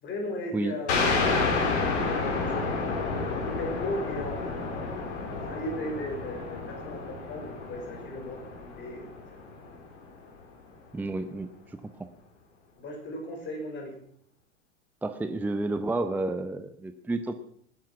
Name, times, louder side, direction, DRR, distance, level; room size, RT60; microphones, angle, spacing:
voice 1, 0.0-2.2 2.5-9.1 12.8-13.9, left 1 dB, 30° left, 2 dB, 5.4 m, -37 dB
sound 1, 0.9-10.1, left 4 dB, 55° left, 4.2 m, -30 dB
voice 2, 10.9-12.1 15.0-17.4, right 2 dB, 5° right, 10 dB, 0.7 m, -31 dB
19.0 x 10.5 x 5.9 m, 0.64 s
figure-of-eight pair, 90°, 39 cm